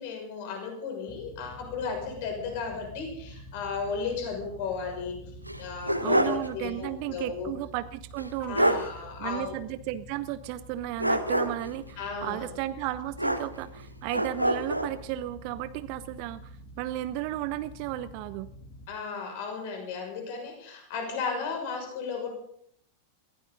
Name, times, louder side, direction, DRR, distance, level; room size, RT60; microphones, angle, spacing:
voice 1, 0.0-5.2 5.6-7.5 8.4-9.6 12.0-12.5 18.9-22.3, left 5 dB, 50° left, 3 dB, 6.2 m, -34 dB
sound 1, 1.1-18.9, right 1 dB, 30° left, 3.1 m, -48 dB
sound 2, 5.4-6.5 6.8-6.9 8.2-8.3 8.5-8.9 11.0-11.7 13.2-13.8 14.1-14.9, right 1 dB, 90° right, 1.2 m, -26 dB
voice 2, 6.0-8.8 9.2-18.5, right 14 dB, 45° right, 14 dB, 0.8 m, -34 dB
22.0 x 16.5 x 4.0 m, 0.66 s
figure-of-eight pair, 90°, 0 cm